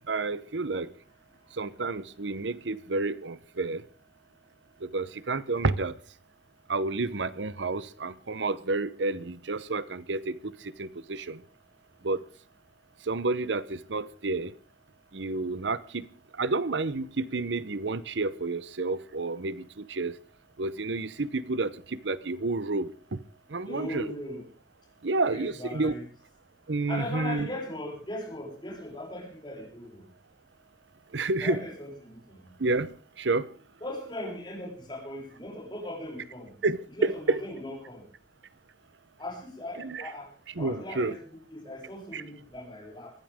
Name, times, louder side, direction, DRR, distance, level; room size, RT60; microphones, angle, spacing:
voice 1, 0.1-0.9 1.5-3.8 4.8-5.9 6.7-11.4 12.0-12.2 13.0-14.5 15.1-16.1 16.4-20.2 20.6-23.2 23.5-24.1 25.0-25.9 26.7-27.5 31.1-31.6 32.6-33.5 36.6-37.4 39.8-40.1 40.6-41.1 42.1-42.2, right 3 dB, 85° right, 17 dB, 0.9 m, -30 dB
voice 2, 23.6-24.4 25.2-26.1 26.9-30.0 31.4-32.5 33.8-36.5 36.9-38.0 39.2-40.3 40.6-43.1, left 1 dB, 25° left, -1 dB, 7.4 m, -39 dB
21.0 x 15.5 x 3.6 m, 0.39 s
head